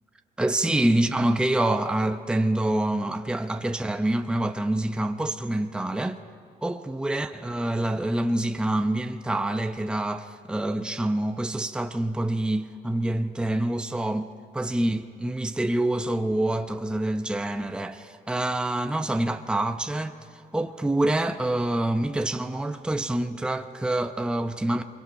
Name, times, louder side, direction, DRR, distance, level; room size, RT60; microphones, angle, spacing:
voice 1, 0.4-6.2 6.6-14.3 14.5-20.1 20.5-24.8, right 1 dB, 5° right, 0.7 m, -26 dB
25.0 x 22.0 x 5.2 m
cardioid pair, 110°, 17 cm